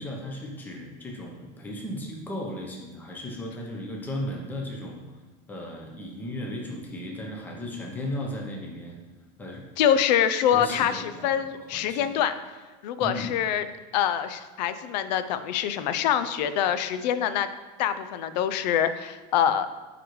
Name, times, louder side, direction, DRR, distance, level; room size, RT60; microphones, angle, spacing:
voice 1, 0.0-5.0 5.5-9.0 9.4-9.6 10.5-11.3 11.7-12.1 13.0-13.3, left 1 dB, 10° left, -1 dB, 0.7 m, -35 dB
voice 2, 9.8-12.3 12.8-13.7 13.9-17.5 17.8-19.7, left 9 dB, 90° left, 11 dB, 0.5 m, -25 dB
9.1 x 3.9 x 3.1 m, 1.3 s
supercardioid pair, 175°, 21 cm